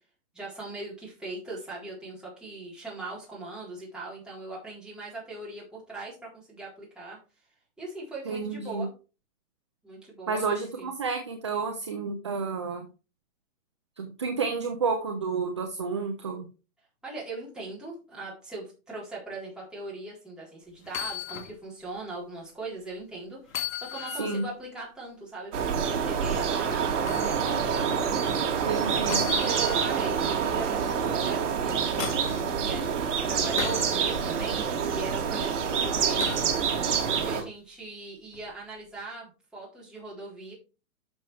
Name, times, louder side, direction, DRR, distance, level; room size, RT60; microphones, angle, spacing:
voice 1, 0.3-7.2 7.8-8.9 9.8-10.5 10.7-10.9 17.0-23.4 23.8-28.3 29.3-36.3 37.0-40.5, right 2 dB, ahead, -7 dB, 3.9 m, -40 dB
voice 2, 8.3-8.9 10.3-12.9 14.0-16.5 24.2-24.5 28.7-29.2, right 4 dB, 20° right, 4 dB, 0.4 m, -30 dB
sound 1, 20.9-21.5 22.0-22.1 23.5-24.5 27.1-27.3 29.1-30.0 31.5-32.4 33.6-34.0 36.2-36.6 38.3-38.5, left 10 dB, 60° left, 2.1 m, -36 dB
sound 2, 25.5-37.4, right 7 dB, 50° right, 2.7 m, -27 dB
11.5 x 6.4 x 3.3 m, 0.33 s
hypercardioid pair, 160°, 46 cm